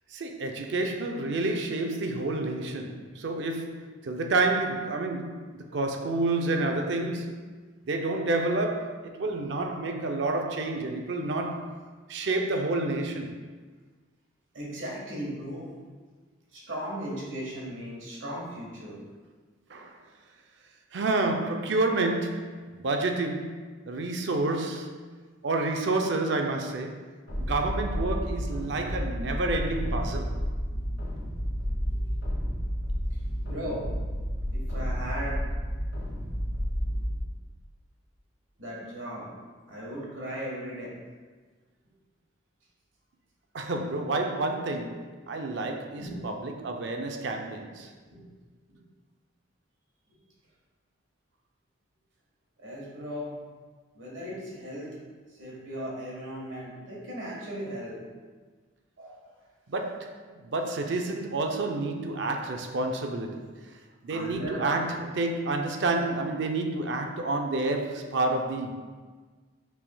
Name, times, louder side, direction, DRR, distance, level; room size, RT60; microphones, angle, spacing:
voice 1, 0.1-7.4 7.9-11.8 12.1-13.4 19.7-20.0 20.9-25.0 25.4-27.0 27.4-30.4 43.5-47.9 59.7-63.5 64.0-68.8, right 2 dB, 65° right, 0.5 m, -29 dB
voice 2, 14.5-15.7 16.5-19.0 31.9-32.0 33.4-33.9 34.5-35.4 38.6-39.3 39.7-40.9 46.0-46.3 48.1-48.2 48.7-48.8 50.1-50.2 52.6-53.4 53.9-54.9 55.4-58.0 59.0-59.2 64.1-64.7, equal, 90° right, 1.3 m, -37 dB
sound 1, 27.3-37.2, equal, 80° left, 1.4 m, -31 dB
5.8 x 3.4 x 2.2 m
head